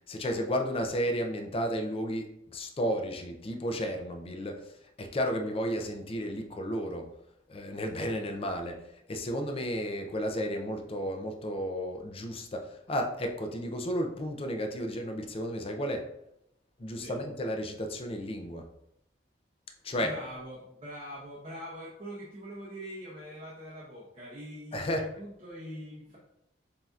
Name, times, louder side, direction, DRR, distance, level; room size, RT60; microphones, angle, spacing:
voice 1, 0.1-4.6 5.0-7.1 7.5-8.8 9.1-16.1 16.8-18.7 19.8-20.1 24.7-25.0, equal, 30° left, 4 dB, 0.5 m, -33 dB
voice 2, 19.9-26.2, equal, 35° right, -6 dB, 0.9 m, -43 dB
7.3 x 2.7 x 2.4 m, 0.80 s
head